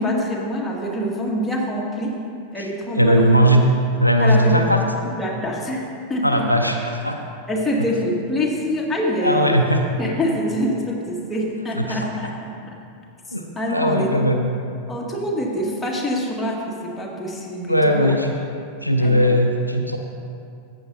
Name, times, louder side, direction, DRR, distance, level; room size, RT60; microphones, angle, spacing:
voice 1, 0.0-2.2 2.5-3.7 4.2-4.9 5.2-6.5 7.5-9.6 10.0-12.3 12.6-12.8 13.6-14.3 14.9-18.1 19.0-19.3, equal, 10° left, -4 dB, 1.9 m, -25 dB
voice 2, 3.0-3.6 4.0-4.8 6.2-6.8 7.0-7.2 9.2-9.8 11.8-12.3 13.3-13.4 13.7-14.5 17.7-18.3 18.8-20.0, equal, 90° left, 3 dB, 0.6 m, -18 dB
14.0 x 8.8 x 2.7 m, 2.4 s
figure-of-eight pair, 90°, 0 cm